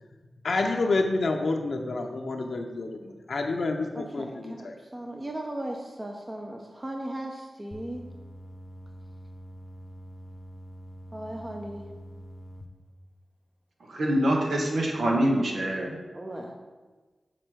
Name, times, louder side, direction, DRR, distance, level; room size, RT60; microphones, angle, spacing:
voice 1, 0.4-4.8, left 3 dB, 75° left, 2 dB, 0.7 m, -28 dB
voice 2, 3.9-4.7 4.9-8.0 11.1-11.9 16.1-16.6, right 1 dB, 25° right, 1 dB, 0.8 m, -37 dB
sound 1, 7.7-12.6, equal, 30° left, 0.7 m, -45 dB
voice 3, 13.9-16.0, right 1 dB, 85° right, -1 dB, 1.4 m, -25 dB
6.8 x 4.2 x 6.2 m, 1.3 s
cardioid pair, 60°, 0 cm